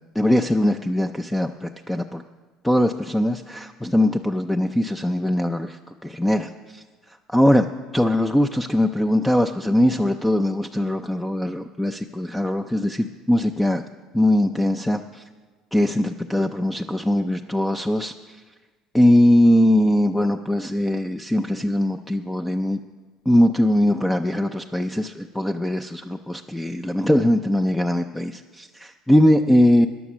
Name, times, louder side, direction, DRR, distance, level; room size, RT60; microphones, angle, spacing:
voice 1, 0.1-2.2 2.6-7.7 7.9-13.8 14.1-15.2 15.7-18.4 18.9-22.8 23.3-29.9, left 1 dB, 5° left, 7 dB, 0.4 m, -21 dB
14.0 x 10.5 x 6.1 m, 1.4 s
cardioid pair, 120°, 0 cm